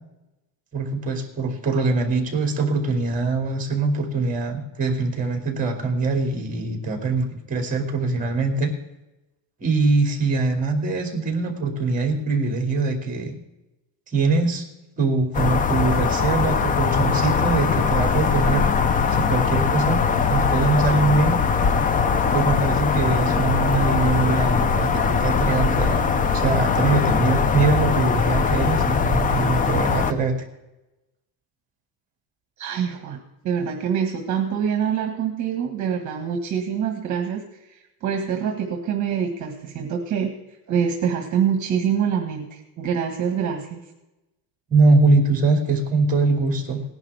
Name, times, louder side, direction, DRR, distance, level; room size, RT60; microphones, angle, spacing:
voice 1, 0.7-8.7 9.6-13.3 14.1-14.6 15.0-18.7 19.1-20.0 20.3-21.4 22.3-26.1 26.3-30.3 44.7-46.8, right 3 dB, 20° right, 3 dB, 2.5 m, -22 dB
sound 1, 15.3-30.1, left 5 dB, 20° left, 0.3 m, -21 dB
voice 2, 32.6-33.2 33.4-40.3 40.7-43.8, right 7 dB, 40° right, 3 dB, 1.6 m, -25 dB
18.5 x 10.5 x 3.5 m, 0.97 s
cardioid pair, 160°, 44 cm